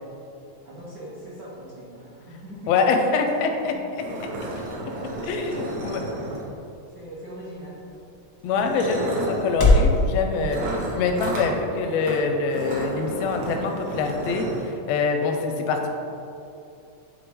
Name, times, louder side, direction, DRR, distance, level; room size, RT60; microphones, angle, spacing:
voice 1, 0.6-2.8 3.7-4.2 4.9-6.0 6.9-7.8, right 1 dB, 80° right, -7 dB, 0.9 m, -42 dB
voice 2, 2.7-3.7 5.2-6.0 8.4-10.6 10.9-15.9, left 4 dB, 80° left, 4 dB, 1.5 m, -24 dB
sound 1, 3.3-3.4 3.6-3.7 4.0-6.7 7.7-7.9 8.5-9.5 10.5-11.5 12.0-12.2 12.5-14.6, right 1 dB, 65° right, 2.2 m, -32 dB
sound 2, 3.7-10.0, left 2 dB, 60° left, 0.6 m, -27 dB
9.5 x 3.7 x 3.5 m, 2.7 s
omnidirectional pair, 3.4 m